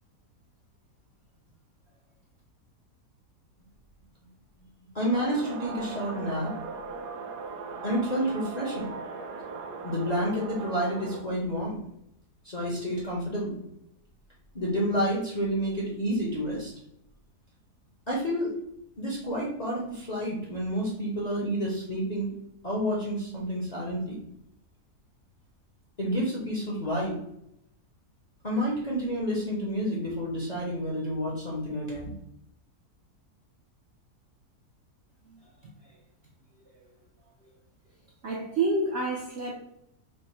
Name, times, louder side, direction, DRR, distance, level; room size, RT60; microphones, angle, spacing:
voice 1, 4.9-6.5 7.8-8.9 9.8-11.8 12.4-13.6 14.5-16.7 18.1-18.5 19.0-22.3 22.6-24.2 26.0-27.2 28.4-32.1, equal, 40° left, 0.6 m, -29 dB
sound 1, 5.1-11.2, right 4 dB, 85° right, 1.2 m, -38 dB
voice 2, 38.2-39.5, right 2 dB, 65° right, 0.6 m, -29 dB
3.4 x 2.1 x 4.1 m
omnidirectional pair, 1.7 m